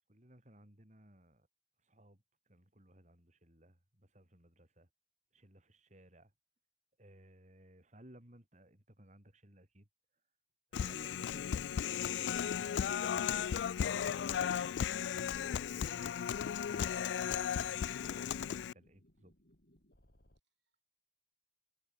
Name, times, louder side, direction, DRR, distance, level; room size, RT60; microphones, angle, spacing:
voice 1, 0.1-1.5 1.8-4.9 5.3-6.3 7.0-9.9 10.7-11.7 12.3-19.3, right 1 dB, 40° right, 4.8 m, -61 dB
Human voice, 10.7-18.7, left 8 dB, 80° left, 0.3 m, -35 dB
sound 1, 17.1-20.4, equal, 60° left, 7.0 m, -68 dB
voice 2, 20.4-20.9, right 1 dB, 80° right, 7.3 m, -78 dB
head